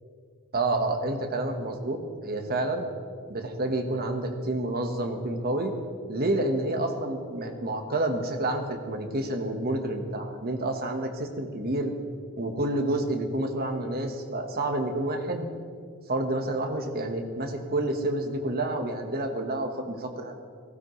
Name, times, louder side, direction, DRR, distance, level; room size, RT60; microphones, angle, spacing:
voice 1, 0.5-2.9 3.3-5.7 6.1-11.9 12.4-15.5 16.1-20.4, right 1 dB, 45° right, 4 dB, 1.4 m, -29 dB
19.0 x 16.0 x 3.2 m, 2.1 s
head